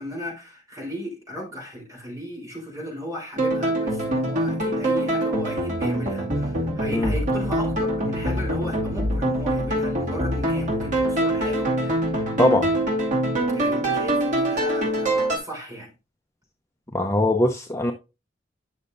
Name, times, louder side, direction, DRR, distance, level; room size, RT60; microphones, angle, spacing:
voice 1, 0.0-12.0 13.5-15.9, equal, 20° right, 3.8 m, -35 dB
sound 1, 3.4-15.4, right 1 dB, 45° right, 2.4 m, -24 dB
voice 2, 16.9-17.9, left 1 dB, 15° left, 0.6 m, -21 dB
9.9 x 6.3 x 2.6 m
head